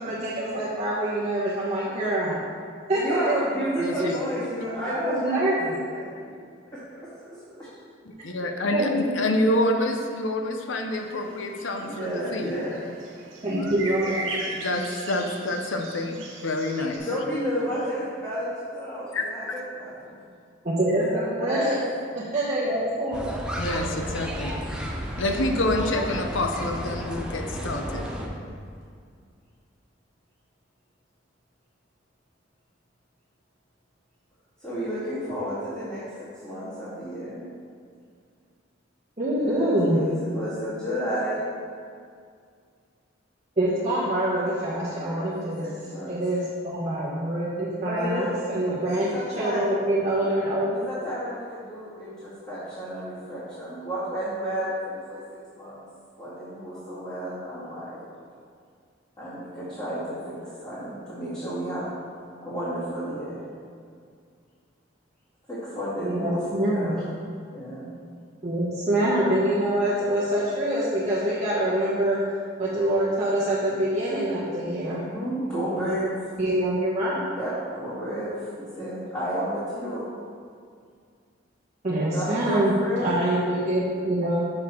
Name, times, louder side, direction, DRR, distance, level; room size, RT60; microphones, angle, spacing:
voice 1, 0.0-2.4 2.9-3.4 3.9-4.2 4.5-5.7 8.7-9.5 13.4-14.2 20.6-21.8 22.1-23.2 39.2-40.0 43.6-45.7 46.1-49.1 49.4-50.8 66.0-66.9 68.4-72.2 72.6-75.0 76.4-77.2 81.8-82.7 83.0-84.4, right 1 dB, 35° right, -8 dB, 1.1 m, -25 dB
voice 2, 3.0-5.4 5.7-6.8 11.8-12.9 13.9-14.2 17.0-20.1 21.0-21.7 27.8-28.4 34.6-36.0 36.4-37.5 39.3-41.5 44.9-46.1 47.8-48.3 48.7-49.7 50.7-55.2 55.5-55.8 56.2-58.0 59.2-60.3 60.6-61.9 62.4-63.4 65.5-67.1 67.5-68.0 74.8-76.2 77.4-80.1 82.0-83.4, equal, 20° left, -13 dB, 2.0 m, -32 dB
voice 3, 3.8-4.2 8.1-12.6 14.4-17.1 19.1-19.6 23.6-24.6 25.2-28.0, left 1 dB, 80° left, 3 dB, 0.7 m, -27 dB
sound 1, 10.9-17.0, right 2 dB, 85° right, 1.3 m, -38 dB
sound 2, 23.1-28.3, equal, 5° right, 0.6 m, -32 dB
6.8 x 6.0 x 4.4 m, 2.2 s
head